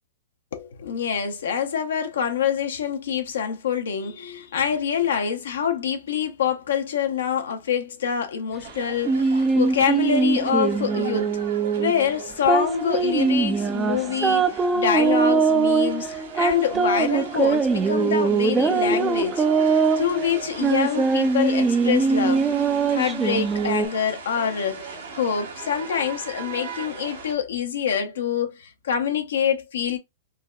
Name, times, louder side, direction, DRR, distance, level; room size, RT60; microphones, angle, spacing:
voice 1, 0.5-11.4 11.8-22.4 22.9-30.0, left 8 dB, 80° left, 0.6 m, -26 dB
sound 1, 8.6-27.3, right 5 dB, 80° right, 1.2 m, -39 dB
sound 2, 9.1-23.9, right 4 dB, 15° right, 0.3 m, -22 dB
3.5 x 2.0 x 2.2 m
hypercardioid pair, 130°, 0 cm